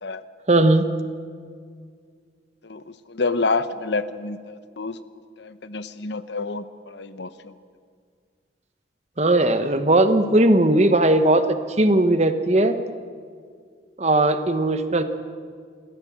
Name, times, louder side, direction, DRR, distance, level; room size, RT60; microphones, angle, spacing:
voice 1, 0.5-0.8 9.2-12.8 14.0-15.0, right 1 dB, 35° right, 9 dB, 1.2 m, -18 dB
voice 2, 2.6-5.0 5.4-7.5, left 3 dB, 70° left, 12 dB, 0.9 m, -28 dB
28.5 x 14.0 x 7.4 m, 2.1 s
head